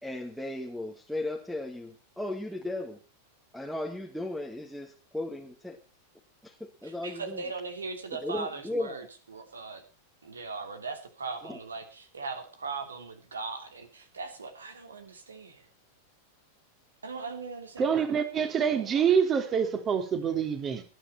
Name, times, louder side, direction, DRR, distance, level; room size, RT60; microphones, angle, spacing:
voice 1, 0.0-3.0 3.5-5.8 6.4-7.4 8.2-9.0 11.4-11.6, left 1 dB, ahead, 1.9 m, -36 dB
voice 2, 6.8-9.8 10.2-15.7 17.0-18.0, right 4 dB, 70° right, 2.9 m, -39 dB
voice 3, 17.8-20.8, right 7 dB, 25° right, 3.0 m, -26 dB
20.0 x 10.0 x 4.3 m
figure-of-eight pair, 90°, 0 cm